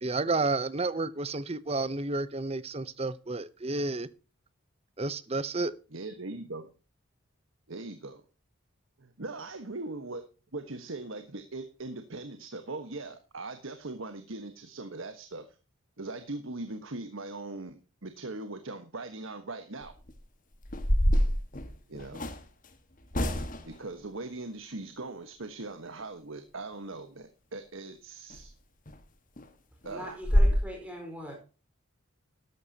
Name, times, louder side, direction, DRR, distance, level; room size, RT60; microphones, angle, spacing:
voice 1, 0.0-4.1 5.0-5.7, right 3 dB, 30° right, 0.7 m, -31 dB
voice 2, 5.9-6.7 7.7-8.2 9.0-10.2 10.5-15.4 16.0-19.9 21.9-22.3 23.6-28.5 29.8-30.2, right 2 dB, 70° right, 1.3 m, -40 dB
sound 1, 19.8-20.1 20.6-22.4 23.1-23.8 28.3-28.4 28.9-29.0 29.4-29.5 29.8-29.9 30.2-30.6, equal, 40° left, 1.5 m, -25 dB
voice 3, 29.8-31.4, equal, 5° right, 4.4 m, -41 dB
13.5 x 12.0 x 2.8 m
head